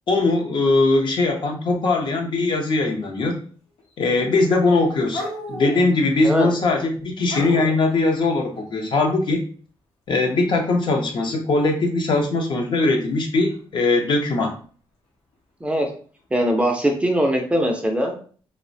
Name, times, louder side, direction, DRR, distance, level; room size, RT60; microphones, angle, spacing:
voice 1, 0.1-3.4 4.0-9.4 10.1-14.6, left 3 dB, 55° left, 3 dB, 0.5 m, -20 dB
sound 1, 3.8-4.2 4.5-6.3 7.2-7.8 12.0-12.3 13.5-13.6 15.7-15.8 16.7-16.9, left 1 dB, 85° left, 0.8 m, -34 dB
voice 2, 16.3-18.1, equal, 10° right, 2 dB, 0.4 m, -21 dB
2.3 x 2.0 x 2.6 m, 0.43 s
wide cardioid pair, 140°, 10 cm